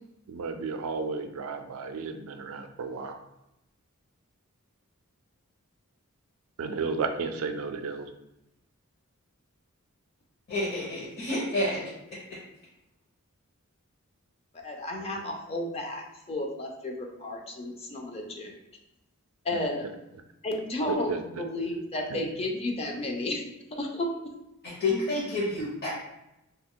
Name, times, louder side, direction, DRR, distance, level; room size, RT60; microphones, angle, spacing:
voice 1, 0.3-3.2 6.6-8.1 20.9-21.2 22.1-22.2, right 4 dB, 70° right, 7 dB, 0.4 m, -33 dB
voice 2, 10.5-12.4 24.6-25.9, left 2 dB, 50° left, -9 dB, 0.8 m, -30 dB
voice 3, 14.5-18.6 19.4-19.8 20.4-21.1 21.4-23.4 23.8-24.1, left 1 dB, 30° left, 1 dB, 0.4 m, -32 dB
2.9 x 2.3 x 3.6 m, 0.88 s
head